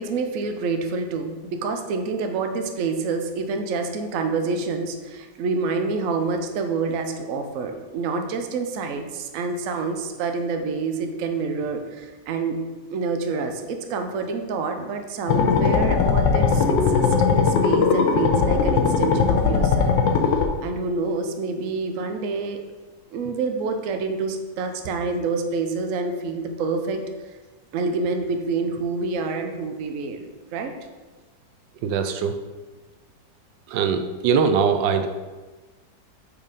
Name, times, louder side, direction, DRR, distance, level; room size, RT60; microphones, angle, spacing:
voice 1, 0.0-12.6 12.9-19.9 20.6-22.6 23.1-27.0 27.7-30.2 30.5-30.7, right 4 dB, 60° right, 5 dB, 0.9 m, -27 dB
sound 1, 15.3-20.5, left 5 dB, 85° left, 1.5 m, -19 dB
voice 2, 31.8-32.4 33.7-35.1, right 6 dB, 85° right, 7 dB, 1.3 m, -21 dB
5.7 x 4.8 x 5.2 m, 1.3 s
omnidirectional pair, 2.0 m